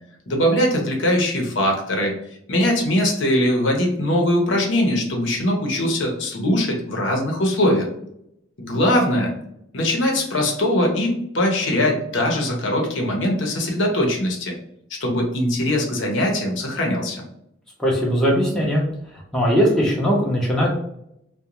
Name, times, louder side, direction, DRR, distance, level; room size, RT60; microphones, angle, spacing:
voice 1, 0.3-2.1 2.5-7.9 8.6-9.3 9.7-14.5 15.0-17.2, left 1 dB, 70° left, 1 dB, 0.7 m, -21 dB
voice 2, 17.8-18.8 19.3-20.7, equal, 5° left, -4 dB, 0.6 m, -19 dB
2.5 x 2.2 x 2.9 m, 0.76 s
head